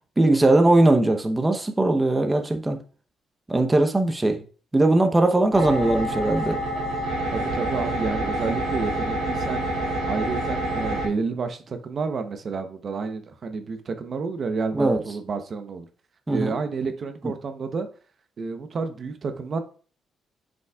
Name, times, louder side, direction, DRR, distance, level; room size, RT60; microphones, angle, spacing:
voice 1, 0.2-2.8 3.5-4.4 4.7-6.6 14.7-15.0 16.3-16.5, right 2 dB, 15° right, 0.8 m, -20 dB
sound 1, 5.5-11.1, right 1 dB, 85° right, 3.1 m, -27 dB
voice 2, 7.3-9.7 10.0-15.9 16.3-17.9 18.4-19.6, right 4 dB, 50° right, 0.8 m, -30 dB
8.0 x 5.2 x 2.3 m
cardioid pair, 90°, 0 cm